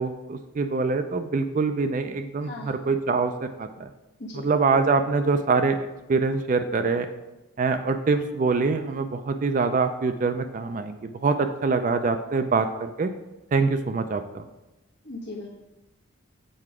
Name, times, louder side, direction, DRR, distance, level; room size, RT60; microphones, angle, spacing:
voice 1, 0.0-3.9 4.3-5.8 6.1-7.1 7.6-13.1 13.5-14.4, right 4 dB, 35° right, 9 dB, 0.3 m, -24 dB
voice 2, 2.4-2.8 4.2-4.5 15.0-15.5, left 2 dB, 50° left, -3 dB, 1.3 m, -38 dB
7.7 x 4.7 x 4.8 m, 1.0 s
head